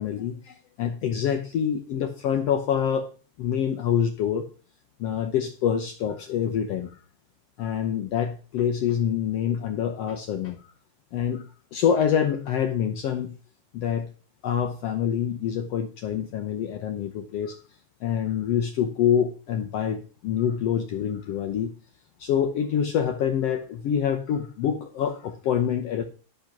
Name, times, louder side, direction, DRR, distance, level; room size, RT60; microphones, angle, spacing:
voice 1, 0.0-3.1 3.4-4.4 5.0-6.9 7.6-10.6 11.1-13.3 13.7-14.1 14.4-17.6 18.0-21.7 22.2-26.0, left 8 dB, 70° left, 5 dB, 1.6 m, -26 dB
12.0 x 5.5 x 5.9 m, 0.39 s
omnidirectional pair, 3.6 m